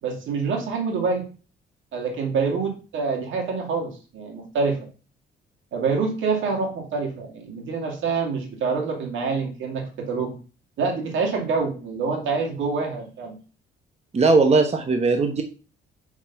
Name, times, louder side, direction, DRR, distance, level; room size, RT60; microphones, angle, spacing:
voice 1, 0.0-1.3 1.9-4.8 5.7-10.4 10.8-13.4, right 4 dB, 75° right, 1 dB, 2.2 m, -26 dB
voice 2, 14.1-15.4, right 3 dB, 30° right, 5 dB, 1.1 m, -18 dB
5.3 x 4.9 x 5.9 m, 0.36 s
cardioid pair, 90°, 20 cm